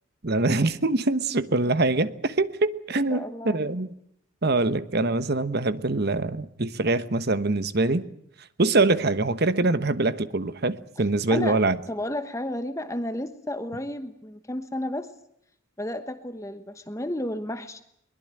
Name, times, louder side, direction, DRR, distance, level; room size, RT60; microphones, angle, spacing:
voice 1, 0.2-3.9 4.4-8.0 8.6-11.8, right 2 dB, 50° right, 1.1 m, -24 dB
voice 2, 3.1-3.7 11.3-11.6 11.9-15.1 15.8-17.8, left 1 dB, 15° left, 1.1 m, -32 dB
22.5 x 20.5 x 8.9 m
head